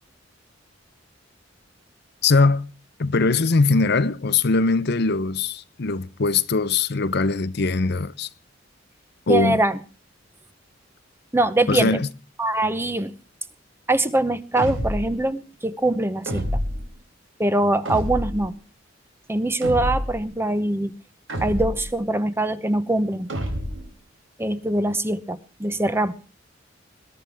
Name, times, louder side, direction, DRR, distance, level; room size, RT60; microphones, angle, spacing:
voice 1, 2.2-2.7 3.0-8.3 9.3-9.6 11.7-12.1, left 3 dB, 60° left, 0.7 m, -21 dB
voice 2, 9.3-9.8 11.3-12.0 12.4-13.1 13.9-16.4 17.4-18.5 19.3-20.9 21.4-23.3 24.4-26.1, right 1 dB, 10° right, 0.9 m, -23 dB
sound 1, 14.6-15.2 16.3-16.9 17.8-18.5 19.6-20.2 21.3-22.0 23.3-23.9, equal, 80° right, 3.6 m, -28 dB
21.5 x 13.0 x 3.5 m
head